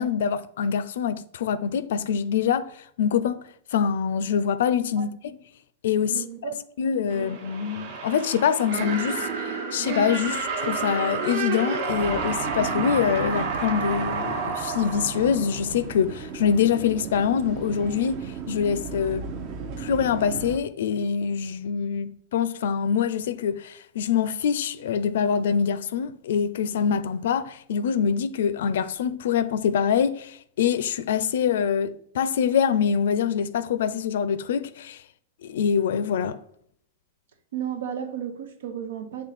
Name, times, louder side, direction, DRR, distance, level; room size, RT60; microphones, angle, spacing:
voice 1, 0.0-2.7 3.0-5.4 5.8-6.5 6.8-19.3 19.8-35.0 35.4-36.4, left 7 dB, 70° left, 0.5 m, -25 dB
voice 2, 6.1-6.6 7.0-7.3 37.5-39.3, right 9 dB, 85° right, 1.0 m, -33 dB
sound 1, 7.1-16.0, right 4 dB, 50° right, 1.1 m, -30 dB
sound 2, 11.9-20.6, right 5 dB, 35° right, 0.6 m, -36 dB
7.5 x 3.1 x 4.2 m
supercardioid pair, 170°, 0 cm